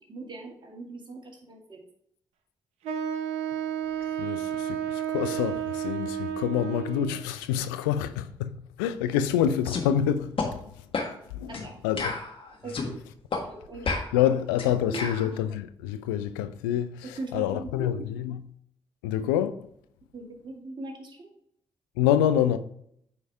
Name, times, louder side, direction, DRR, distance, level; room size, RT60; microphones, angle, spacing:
voice 1, 0.1-1.8 11.5-11.8 12.6-13.0 13.4-13.9 14.9-15.1 17.2-18.0 20.1-21.3, right 3 dB, 45° right, 2.2 m, -40 dB
Wind instrument woodwind instrument, 2.8-7.3, right 9 dB, 80° right, 0.8 m, -31 dB
voice 2, 4.2-10.7 11.3-12.2 14.1-18.4 19.0-19.7 22.0-22.6, left 10 dB, 90° left, 0.4 m, -27 dB
sound 1, 9.6-9.9 10.4-10.5 10.9-11.1 11.5-11.7 12.0-12.9 13.3-13.4 13.8-15.3, left 4 dB, 55° left, 1.5 m, -31 dB
8.7 x 4.7 x 3.4 m
hypercardioid pair, 40°, 11 cm